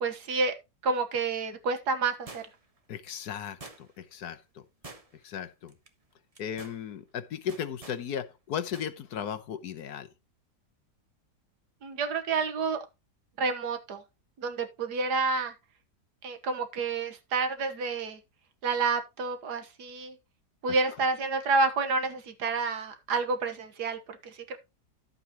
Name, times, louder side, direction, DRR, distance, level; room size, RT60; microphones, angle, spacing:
voice 1, 0.0-0.5 0.8-2.4 11.8-12.8 13.4-14.0 14.4-15.5 16.2-18.2 18.6-20.2 20.6-24.6, right 4 dB, 75° right, 1.8 m, -29 dB
sound 1, 2.3-2.8 3.6-4.1 4.8-5.4 5.7-5.9 6.3-6.8 7.5-8.0 8.7-8.9 9.2-9.3, right 3 dB, 25° right, 1.1 m, -47 dB
voice 2, 2.9-4.6 5.2-5.7 6.4-10.1, left 8 dB, 70° left, 1.4 m, -36 dB
11.5 x 8.1 x 2.9 m
omnidirectional pair, 1.8 m